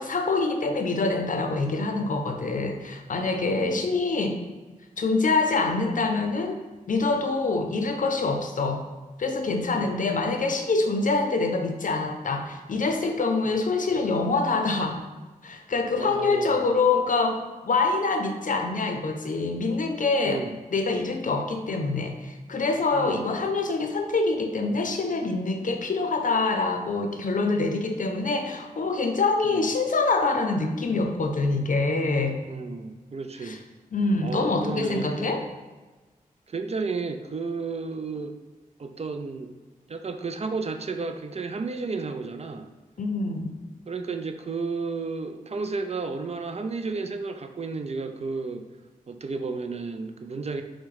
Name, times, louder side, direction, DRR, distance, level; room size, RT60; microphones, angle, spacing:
voice 1, 0.0-4.4 5.0-6.6 6.9-8.8 9.2-15.0 15.4-20.4 20.7-32.4 33.4-33.6 33.9-35.4 43.0-43.5, left 3 dB, 60° left, 5 dB, 0.6 m, -25 dB
voice 2, 3.4-3.9 9.7-10.0 13.4-13.6 16.0-16.7 20.2-20.6 22.9-23.3 29.4-29.7 32.5-33.6 34.2-35.4 36.5-38.4 38.8-39.5 39.9-42.7 43.9-48.7 49.1-50.6, right 4 dB, 45° right, 7 dB, 0.4 m, -32 dB
4.6 x 2.1 x 4.7 m, 1.3 s
cardioid pair, 45°, 15 cm